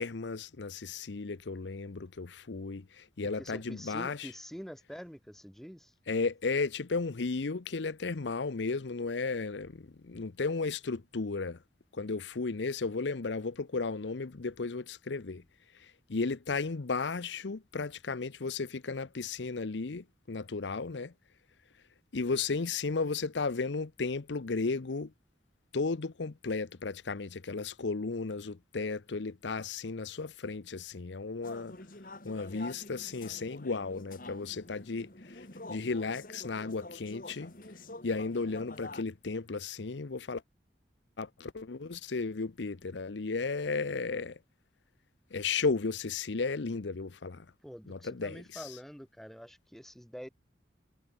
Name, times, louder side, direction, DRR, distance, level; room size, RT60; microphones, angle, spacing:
voice 1, 0.0-4.3 6.1-11.6 11.9-15.4 15.7-21.1 22.1-25.1 25.7-31.8 32.2-37.5 38.0-40.4 41.2-44.4 45.3-47.5 47.9-48.7, left 4 dB, 80° left, 0.7 m, -34 dB
voice 2, 3.4-5.9 47.6-50.3, equal, ahead, 2.8 m, -46 dB
sound 1, 31.4-39.0, left 2 dB, 50° left, 2.6 m, -47 dB
head